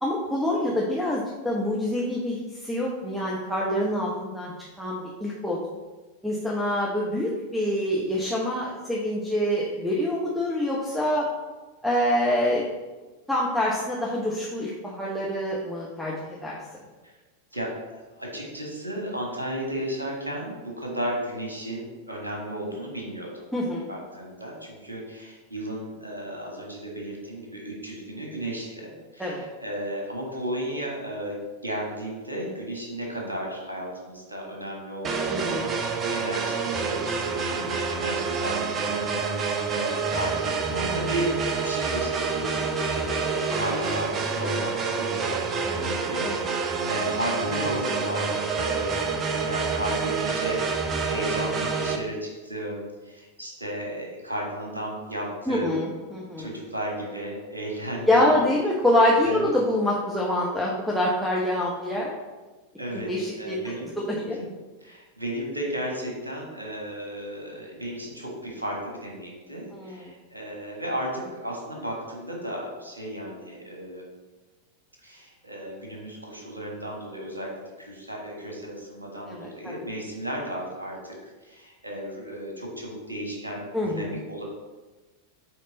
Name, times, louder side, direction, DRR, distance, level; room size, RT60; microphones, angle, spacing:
voice 1, 0.0-4.5 4.8-5.6 6.2-11.3 11.8-12.6 13.3-16.6 23.5-23.8 29.2-29.4 35.3-35.8 45.7-45.9 46.2-46.5 55.5-56.5 58.1-62.1 63.1-64.4 69.7-70.0 79.3-79.7 83.7-84.1, left 1 dB, ahead, -4 dB, 1.0 m, -26 dB
voice 2, 18.2-23.5 23.9-42.6 42.8-55.8 56.4-58.4 59.2-59.5 62.8-63.9 64.4-64.5 64.8-74.1 75.0-84.4, right 1 dB, 80° right, -1 dB, 1.6 m, -34 dB
sound 1, 35.0-52.0, right 5 dB, 25° right, 0.7 m, -28 dB
8.4 x 3.5 x 3.9 m, 1.2 s
figure-of-eight pair, 90°, 0 cm